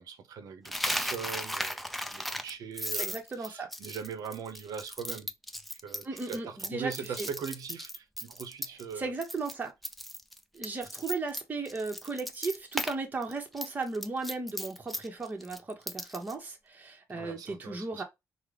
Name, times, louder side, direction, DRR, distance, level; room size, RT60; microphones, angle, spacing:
voice 1, 0.0-5.3 5.8-9.1 17.1-18.0, right 6 dB, 75° right, 0.7 m, -41 dB
Coin (dropping), 0.6-8.9 9.2-9.5 9.8-12.9 13.2-16.3, equal, ahead, 0.3 m, -36 dB
voice 2, 2.9-3.7 6.0-7.3 9.0-9.7 10.5-18.0, right 3 dB, 25° right, 0.8 m, -36 dB
3.6 x 2.0 x 3.2 m
cardioid pair, 110°, 6 cm